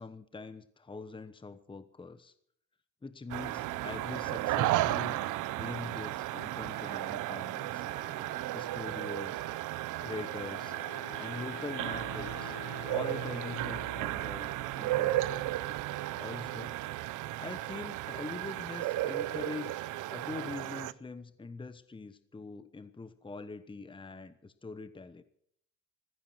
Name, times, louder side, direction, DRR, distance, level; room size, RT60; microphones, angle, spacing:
voice 1, 0.0-2.3 3.0-5.2 5.6-7.9 8.5-9.5 10.0-10.7 11.2-12.6 12.9-15.5 16.2-16.8 17.4-19.7 20.1-25.2, left 3 dB, 15° left, 12 dB, 1.0 m, -43 dB
sound 1, 3.3-20.9, right 15 dB, 90° right, 0.7 m, -34 dB
sound 2, 3.5-8.8, right 7 dB, 35° right, 1.1 m, -49 dB
Wind instrument woodwind instrument, 10.0-15.0, left 10 dB, 85° left, 1.6 m, -48 dB
15.0 x 14.5 x 6.2 m, 0.68 s
cardioid pair, 90°, 30 cm